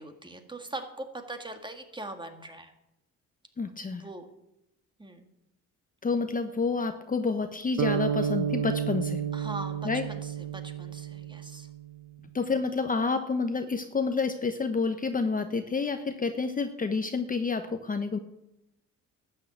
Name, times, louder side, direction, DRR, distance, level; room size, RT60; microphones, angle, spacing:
voice 1, 0.0-2.7 3.9-4.3 5.0-5.3 9.3-11.7, right 2 dB, 15° right, 6 dB, 2.0 m, -41 dB
voice 2, 3.6-4.0 6.0-9.2 9.8-10.0 12.3-18.2, left 4 dB, 30° left, 8 dB, 1.0 m, -29 dB
sound 1, 7.8-12.0, right 8 dB, 65° right, 0.8 m, -31 dB
12.5 x 6.6 x 8.8 m, 0.87 s
cardioid pair, 90°, 30 cm